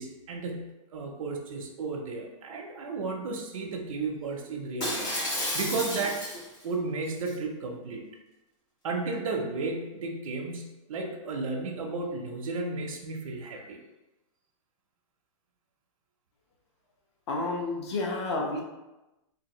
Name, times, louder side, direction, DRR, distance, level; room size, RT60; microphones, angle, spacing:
voice 1, 0.0-5.1 5.5-6.2 6.6-8.0 8.8-13.8, right 3 dB, 75° right, 0 dB, 0.6 m, -33 dB
Shatter, 4.8-6.6 7.1-7.3, left 1 dB, 20° left, 0.6 m, -32 dB
voice 2, 17.3-18.6, left 2 dB, 50° left, 0 dB, 0.7 m, -30 dB
3.4 x 2.5 x 2.9 m, 1.0 s
supercardioid pair, 180°, 18 cm